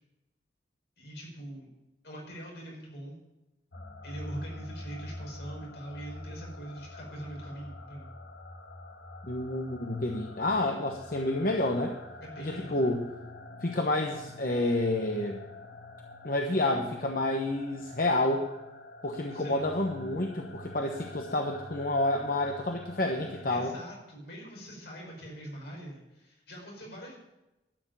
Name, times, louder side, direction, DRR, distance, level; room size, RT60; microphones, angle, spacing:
voice 1, 1.0-1.7 2.0-3.2 4.0-8.1 12.2-13.0 19.3-19.7 23.5-27.1, right 1 dB, 75° left, -1 dB, 5.3 m, -43 dB
sound 1, 3.7-23.7, left 2 dB, 90° left, 1.4 m, -46 dB
voice 2, 9.2-12.0 12.4-13.0 13.6-15.4 16.2-18.5 19.0-23.7, left 1 dB, 50° left, 2 dB, 1.0 m, -29 dB
12.0 x 6.9 x 9.0 m, 0.99 s
head